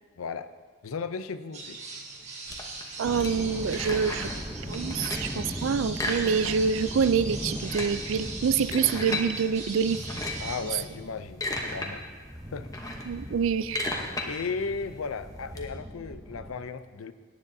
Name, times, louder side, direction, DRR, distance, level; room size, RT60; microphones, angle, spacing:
voice 1, 0.2-0.5 0.8-1.8 10.4-12.1 12.5-12.8 14.3-17.1, left 5 dB, 85° left, 12 dB, 0.5 m, -35 dB
sound 1, 1.5-10.8, right 3 dB, 35° right, 1.5 m, -40 dB
sound 2, 2.5-4.4 4.7-5.4 5.9-6.8 7.1-7.2 7.5-9.3 9.9-10.6 11.1-11.9 12.3-15.6, left 2 dB, 15° left, 0.9 m, -35 dB
sound 3, 3.0-16.5, equal, 5° right, 0.7 m, -39 dB
voice 2, 3.0-4.3 4.7-10.0 13.1-13.9, right 6 dB, 70° right, 15 dB, 0.4 m, -26 dB
17.5 x 9.8 x 2.7 m, 1.5 s
head